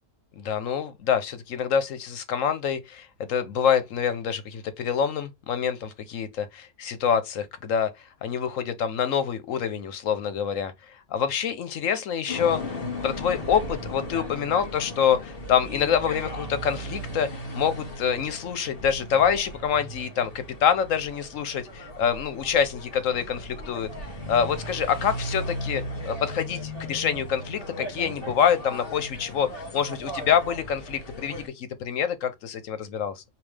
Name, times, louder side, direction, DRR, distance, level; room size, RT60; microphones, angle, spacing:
voice 1, 0.4-7.9 8.2-12.8 13.0-23.9 24.3-33.2, left 7 dB, 75° left, 1.2 m, -26 dB
sound 1, 12.3-31.5, equal, 45° left, 1.7 m, -37 dB
5.3 x 2.7 x 3.2 m
omnidirectional pair, 1.4 m